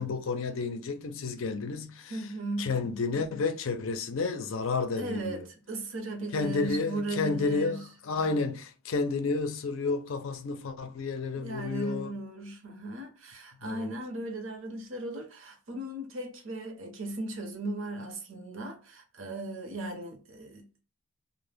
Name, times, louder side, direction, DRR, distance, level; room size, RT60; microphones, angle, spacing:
voice 1, 0.0-2.2 2.6-5.4 6.3-12.1 13.6-13.9, left 4 dB, 70° left, 0.4 m, -31 dB
voice 2, 2.1-2.7 5.0-7.9 11.4-20.7, right 2 dB, 65° right, 0.7 m, -37 dB
2.1 x 2.0 x 3.2 m
head